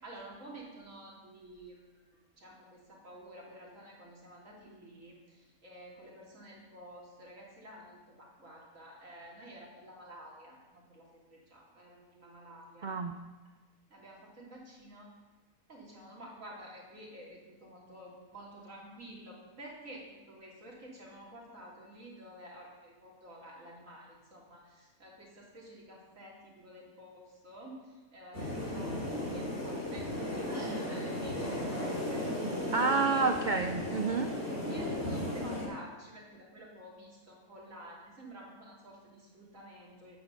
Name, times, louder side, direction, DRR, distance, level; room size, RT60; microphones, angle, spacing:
voice 1, 0.0-13.0 13.9-15.1 15.7-32.2 32.6-33.3 34.7-40.2, right 1 dB, 65° right, -4 dB, 3.5 m, -50 dB
voice 2, 12.8-13.2 32.7-34.3, right 4 dB, 80° right, 7 dB, 0.4 m, -29 dB
sound 1, 28.3-35.7, left 1 dB, 40° left, 3.9 m, -35 dB
9.3 x 9.1 x 6.9 m, 1.3 s
omnidirectional pair, 1.5 m